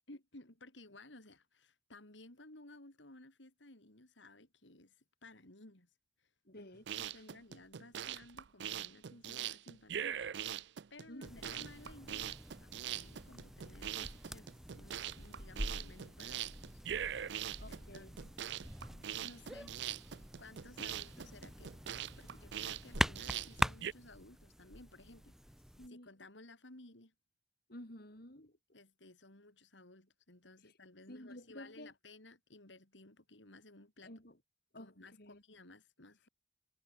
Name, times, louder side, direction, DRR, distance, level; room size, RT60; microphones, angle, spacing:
voice 1, 0.1-5.9 6.2-6.7 7.0-17.3 17.7-18.3 18.9-19.8 20.4-25.6 25.9-27.1 28.7-34.1 34.7-36.3, left 2 dB, 90° left, 4.3 m, -57 dB
voice 2, 6.4-7.1 11.1-11.7 17.6-18.2 25.8-26.1 27.7-28.6 30.6-30.7 31.1-31.9 34.0-34.4 34.7-35.4, left 1 dB, 55° left, 6.3 m, -52 dB
sound 1, 6.7-23.9, right 10 dB, 70° right, 0.5 m, -42 dB
sound 2, 11.2-25.9, equal, ahead, 1.2 m, -43 dB
head